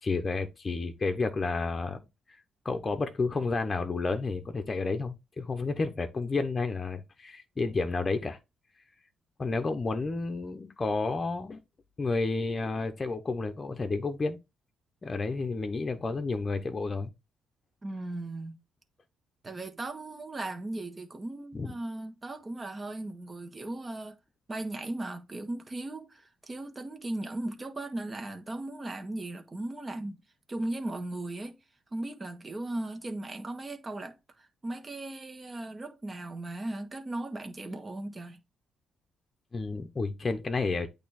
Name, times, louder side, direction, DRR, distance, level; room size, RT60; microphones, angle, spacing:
voice 1, 0.0-8.4 9.4-11.6 12.0-14.4 15.0-17.1 21.5-21.7 39.5-40.9, left 3 dB, 30° left, 0.9 m, -31 dB
voice 2, 17.8-18.6 19.4-24.2 24.5-30.2 30.5-31.6 31.9-38.4, right 2 dB, 25° right, 1.5 m, -37 dB
8.4 x 3.4 x 4.1 m
cardioid pair, 90°, 0 cm